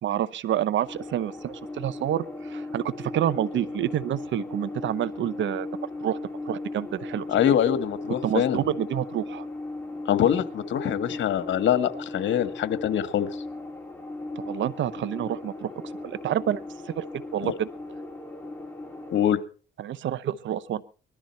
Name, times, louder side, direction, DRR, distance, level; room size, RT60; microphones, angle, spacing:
voice 1, 0.0-5.7 6.0-6.2 6.5-7.3 8.2-9.5 14.4-15.7 16.0-16.6 17.0-17.7 19.8-20.8, right 11 dB, 70° right, 17 dB, 0.9 m, -28 dB
sound 1, 0.8-19.3, left 2 dB, 10° left, 5.2 m, -37 dB
voice 2, 7.3-8.6 10.1-13.3 17.4-17.5 19.1-19.4, left 10 dB, 70° left, 11 dB, 1.6 m, -24 dB
20.5 x 13.0 x 4.4 m, 0.38 s
cardioid pair, 90°, 20 cm